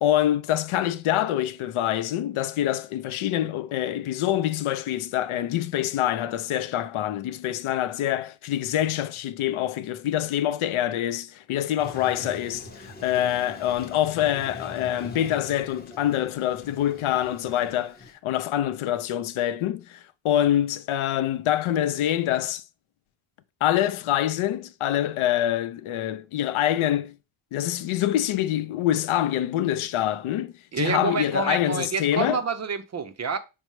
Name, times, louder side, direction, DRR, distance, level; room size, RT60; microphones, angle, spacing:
voice 1, 0.0-18.0 18.2-22.6 23.6-27.1 27.5-32.4, left 12 dB, 80° left, 0.6 m, -25 dB
Toilet flush, 11.8-18.1, left 2 dB, 20° left, 0.7 m, -43 dB
voice 2, 30.7-33.4, right 5 dB, 35° right, 0.4 m, -28 dB
5.4 x 2.0 x 4.6 m
wide cardioid pair, 140°, 49 cm